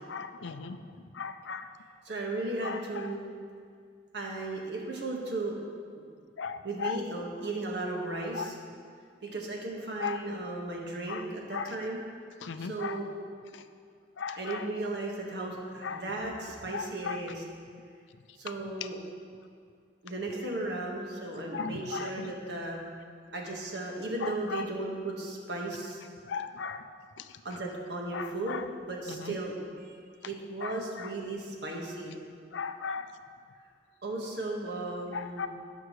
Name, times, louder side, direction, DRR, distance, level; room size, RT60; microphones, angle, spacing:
voice 1, 0.0-1.7 2.6-3.1 6.4-7.0 8.3-8.5 10.0-10.2 11.1-11.2 11.5-11.7 12.4-13.0 13.5-13.6 14.2-14.7 15.8-16.0 16.7-17.2 21.5-22.3 24.2-24.7 26.2-26.8 27.2-27.6 28.1-28.7 29.1-29.3 30.6-31.1 32.5-33.1 35.1-35.5, left 6 dB, 85° left, 9 dB, 0.5 m, -37 dB
voice 2, 2.0-3.2 4.1-5.5 6.6-8.5 9.2-12.0 12.6-13.1 14.4-17.3 18.4-19.0 20.0-22.8 23.3-26.0 27.4-28.6 28.9-30.0 30.2-32.2 34.0-35.5, right 2 dB, 70° right, -1 dB, 1.5 m, -35 dB
17.0 x 6.1 x 3.1 m, 2.2 s
head